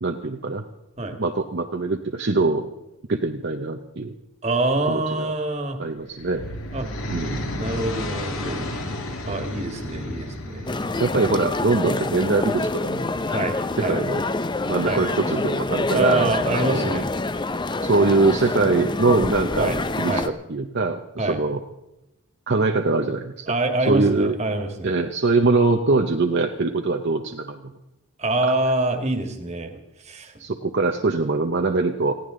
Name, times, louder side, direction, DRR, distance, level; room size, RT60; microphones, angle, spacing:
voice 1, 0.0-0.6 1.2-2.7 3.1-4.1 4.9-5.3 5.8-6.4 7.1-7.4 11.0-13.1 13.8-14.2 14.7-17.0 17.8-21.6 22.5-23.5 23.9-24.4 24.8-27.6 30.4-32.1, right 3 dB, 50° right, 4 dB, 0.8 m, -23 dB
voice 2, 4.4-5.8 6.7-6.9 7.6-8.6 9.2-10.7 13.3-14.0 14.8-15.0 15.9-17.1 19.6-19.8 20.1-20.3 21.2-21.4 23.5-25.0 28.2-29.7 30.0-30.3, right 2 dB, 30° right, 5 dB, 1.8 m, -25 dB
sound 1, 5.9-12.0, left 1 dB, 65° left, 2.1 m, -32 dB
sound 2, 10.7-20.3, left 2 dB, 20° left, 0.5 m, -26 dB
20.5 x 15.5 x 3.8 m, 0.94 s
head